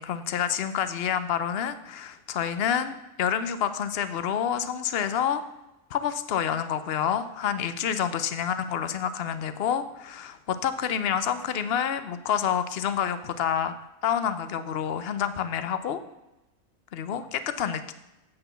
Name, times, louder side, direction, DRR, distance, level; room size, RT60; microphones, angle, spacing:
voice 1, 0.0-5.4 5.9-13.7 14.0-16.0 16.9-17.9, left 8 dB, 55° left, 12 dB, 0.8 m, -28 dB
8.1 x 6.8 x 6.8 m, 0.96 s
omnidirectional pair, 1.4 m